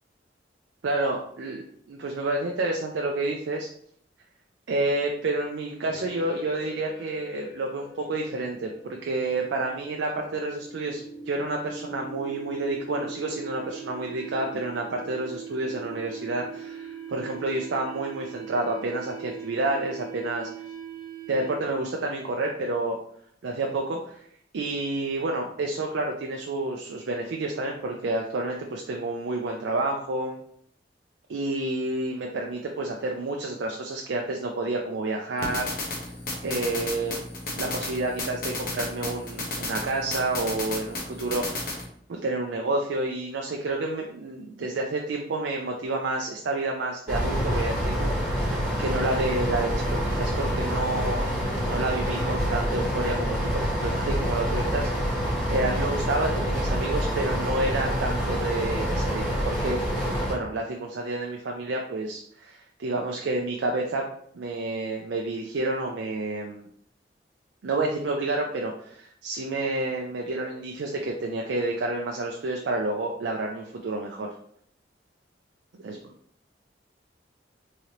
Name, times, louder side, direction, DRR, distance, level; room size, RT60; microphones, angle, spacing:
voice 1, 0.8-3.7 4.7-20.5 21.3-23.0 23.4-24.2 24.5-30.4 31.3-36.0 36.4-41.8 42.1-51.3 51.6-59.8 60.2-64.0 64.3-66.7 67.6-74.3 75.7-76.0, right 2 dB, 80° right, 1 dB, 0.4 m, -29 dB
sound 1, 5.9-21.8, right 4 dB, 85° left, 1.0 m, -41 dB
sound 2, 35.4-41.8, left 2 dB, 50° left, 1.0 m, -33 dB
sound 3, 47.1-60.3, equal, 5° left, 1.4 m, -27 dB
3.7 x 3.2 x 2.9 m, 0.66 s
head